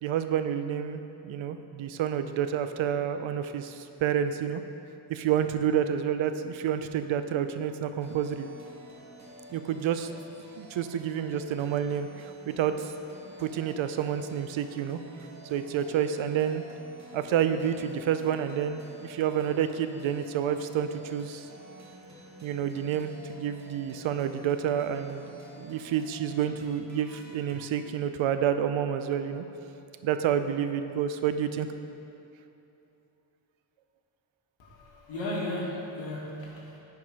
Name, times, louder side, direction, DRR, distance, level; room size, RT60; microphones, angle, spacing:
voice 1, 0.0-4.6 5.1-8.5 9.5-10.1 10.6-12.9 13.2-15.0 15.5-16.6 17.1-21.5 22.4-25.2 25.6-29.5 30.0-31.7, right 9 dB, 85° right, 10 dB, 0.6 m, -29 dB
sound 1, 8.0-27.7, right 1 dB, 35° right, 1.2 m, -50 dB
voice 2, 34.6-36.8, left 1 dB, 70° left, -4 dB, 1.8 m, -35 dB
9.5 x 4.7 x 4.9 m, 2.8 s
wide cardioid pair, 140°, 46 cm